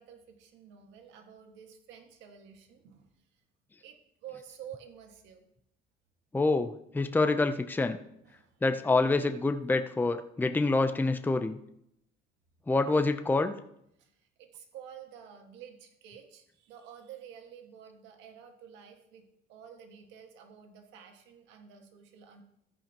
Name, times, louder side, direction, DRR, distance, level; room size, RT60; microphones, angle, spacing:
voice 1, 0.0-3.1 3.8-4.0 4.2-5.5 8.2-8.5 14.0-14.1 14.4-22.4, right 8 dB, 80° right, 4 dB, 1.8 m, -50 dB
voice 2, 6.3-8.0 8.6-11.6 12.7-13.5, left 3 dB, 10° left, 8 dB, 0.6 m, -27 dB
13.5 x 10.0 x 3.0 m, 0.74 s
cardioid pair, 100°, 18 cm